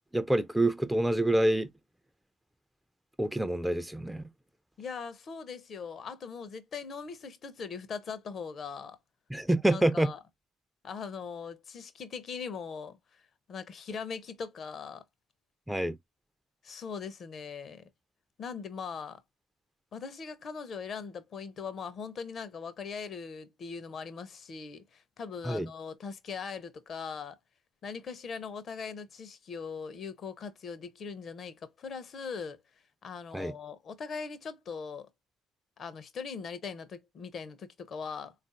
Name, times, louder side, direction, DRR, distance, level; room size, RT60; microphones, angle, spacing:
voice 1, 0.1-1.7 3.2-4.2 9.3-10.1 15.7-16.0 25.5-25.7 33.3-33.5, right 1 dB, 5° right, 0.4 m, -27 dB
voice 2, 4.8-9.0 9.7-10.2 10.8-13.0 13.5-15.0 16.6-17.8 18.4-19.2 19.9-27.4 27.8-32.6 33.0-35.1 35.8-38.3, left 5 dB, 40° left, 0.6 m, -40 dB
3.8 x 2.4 x 2.4 m
figure-of-eight pair, 55°, 0 cm